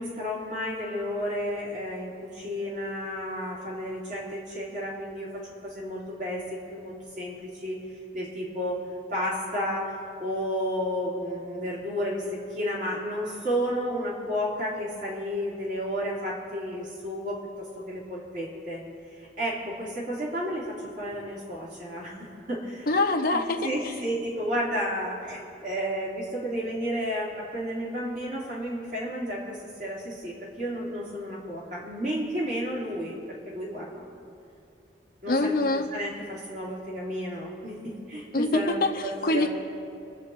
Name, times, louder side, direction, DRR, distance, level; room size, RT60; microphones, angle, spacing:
voice 1, 0.0-7.8 8.1-8.8 9.1-9.9 10.2-18.8 19.4-22.9 23.3-33.2 33.4-34.2 35.2-35.5 35.9-38.8 39.0-39.5, equal, 45° right, -5 dB, 3.1 m, -32 dB
voice 2, 22.9-23.9 35.3-35.9 38.3-39.5, left 2 dB, 50° left, 3 dB, 0.8 m, -25 dB
22.5 x 7.8 x 4.2 m, 2.5 s
head